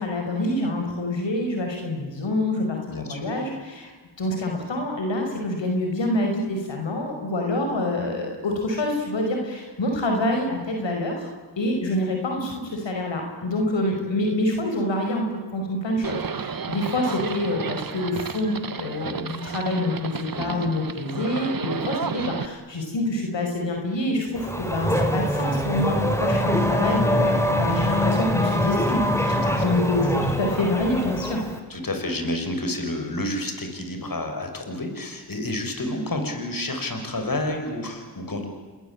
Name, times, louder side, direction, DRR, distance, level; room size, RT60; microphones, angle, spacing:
voice 1, 0.0-3.9 4.2-11.3 11.6-31.4, left 1 dB, 75° left, 2 dB, 5.4 m, -26 dB
voice 2, 2.9-3.3 20.3-20.7 22.2-22.3 29.3-29.6 31.7-38.4, left 1 dB, 50° left, 5 dB, 6.6 m, -30 dB
Livestock farm animals working animals, 16.0-22.5, right 5 dB, 50° right, 1.5 m, -32 dB
Race car auto racing / Accelerating revving vroom, 24.3-31.6, equal, 5° left, 5.0 m, -24 dB
29.0 x 20.0 x 8.9 m, 1.4 s
cardioid pair, 45°, 44 cm